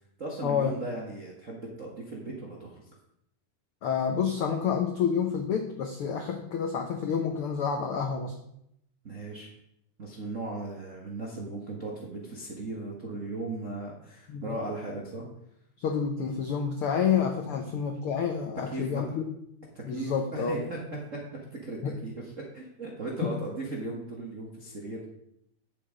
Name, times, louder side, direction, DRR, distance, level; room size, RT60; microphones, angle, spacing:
voice 1, 0.2-2.8 9.0-9.5 10.0-15.3 18.7-19.2 19.7-20.8 21.1-21.2 21.5-25.1, right 2 dB, 45° right, -2 dB, 0.9 m, -37 dB
voice 2, 3.8-8.3 14.3-14.6 15.8-19.2 19.8-20.7 21.8-21.9 23.2-23.3, left 7 dB, 80° left, 5 dB, 1.2 m, -29 dB
10.5 x 7.3 x 5.0 m, 0.76 s
omnidirectional pair, 3.8 m